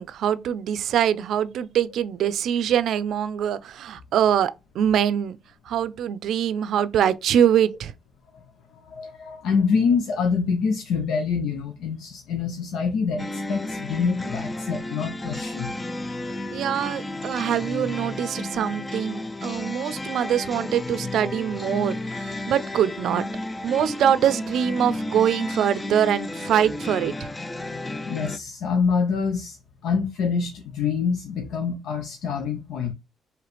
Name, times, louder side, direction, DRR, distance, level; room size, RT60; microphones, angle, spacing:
voice 1, 0.0-5.4 5.7-7.9 16.5-23.2 23.6-27.3, right 9 dB, 70° right, 0.5 m, -23 dB
voice 2, 8.8-15.7 28.1-29.6 29.8-32.9, left 5 dB, 85° left, 0.8 m, -25 dB
sound 1, 13.2-28.4, left 1 dB, 15° left, 0.4 m, -32 dB
4.9 x 3.2 x 3.1 m
cardioid pair, 140°, 0 cm